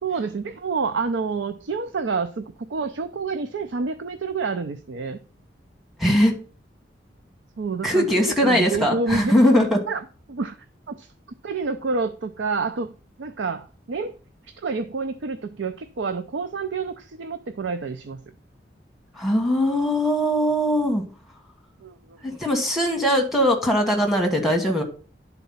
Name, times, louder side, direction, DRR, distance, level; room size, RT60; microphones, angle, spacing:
voice 1, 0.0-5.2 7.6-9.3 9.9-10.6 10.9-11.1 11.4-12.9 13.2-14.2 14.5-18.2 21.8-22.0, right 4 dB, 80° right, 9 dB, 0.5 m, -28 dB
voice 2, 6.0-6.3 7.8-9.8 19.2-21.0 22.2-24.8, equal, ahead, 1 dB, 1.4 m, -20 dB
10.5 x 4.1 x 5.5 m, 0.38 s
head